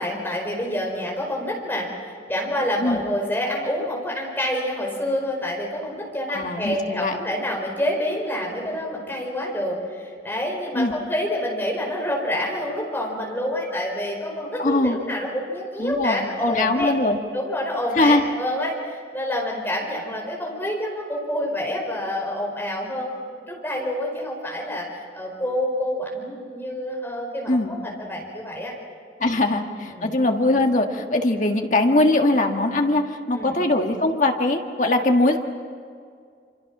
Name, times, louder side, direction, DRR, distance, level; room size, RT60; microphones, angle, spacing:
voice 1, 0.0-16.9 17.3-23.2 23.5-28.7 29.3-29.4 29.9-30.1 33.3-33.5, left 1 dB, 10° left, -1 dB, 5.1 m, -27 dB
voice 2, 6.3-7.1 10.7-10.9 14.6-15.0 15.8-17.2 18.0-18.2 27.5-27.7 29.2-35.4, left 2 dB, 45° left, 3 dB, 1.8 m, -21 dB
27.0 x 26.5 x 6.1 m, 2.2 s
head